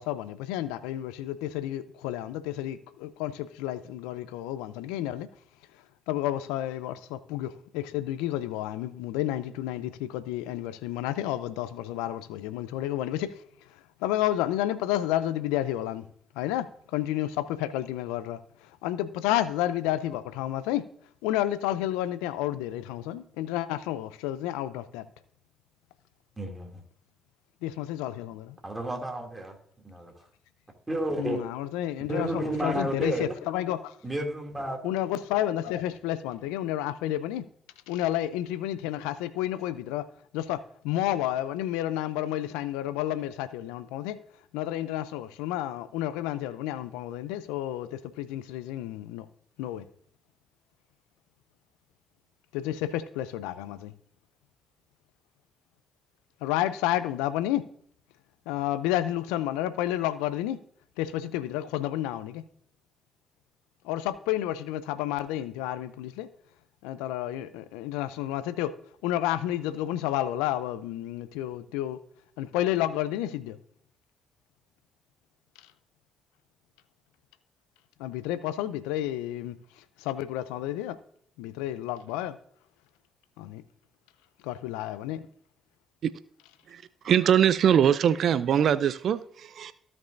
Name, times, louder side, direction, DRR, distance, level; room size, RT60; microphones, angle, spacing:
voice 1, 0.0-5.3 6.1-13.4 14.0-16.0 16.4-16.7 16.9-20.8 21.2-25.1 27.6-28.6 31.2-34.0 34.8-37.4 37.9-40.1 40.3-44.2 44.5-49.3 49.6-49.8 52.5-53.9 56.4-57.6 58.5-60.6 61.0-62.4 63.8-66.3 66.8-68.7 69.0-72.0 72.4-73.6 78.0-81.0 81.4-82.4 83.4-83.6 84.4-85.3, left 13 dB, 85° left, 0.5 m, -31 dB
voice 2, 26.4-26.8 28.6-29.6 29.8-30.1 30.9-31.4 32.1-33.3 34.0-34.9, right 1 dB, 25° right, 2.6 m, -31 dB
voice 3, 86.7-89.7, right 9 dB, 65° right, 0.4 m, -23 dB
15.5 x 5.4 x 2.6 m
hypercardioid pair, 45°, 0 cm